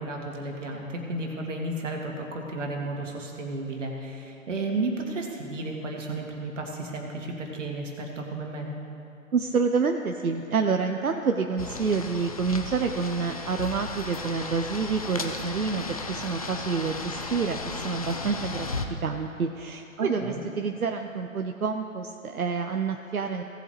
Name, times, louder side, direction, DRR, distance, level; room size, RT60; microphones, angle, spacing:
voice 1, 0.0-8.7 20.0-20.4, right 2 dB, 60° right, 0 dB, 2.1 m, -33 dB
voice 2, 9.3-18.7 19.0-23.4, right 5 dB, 85° right, 5 dB, 0.7 m, -28 dB
sound 1, 11.6-18.9, left 3 dB, 30° left, 0.4 m, -35 dB
17.0 x 8.1 x 3.1 m, 2.7 s
figure-of-eight pair, 130°, 42 cm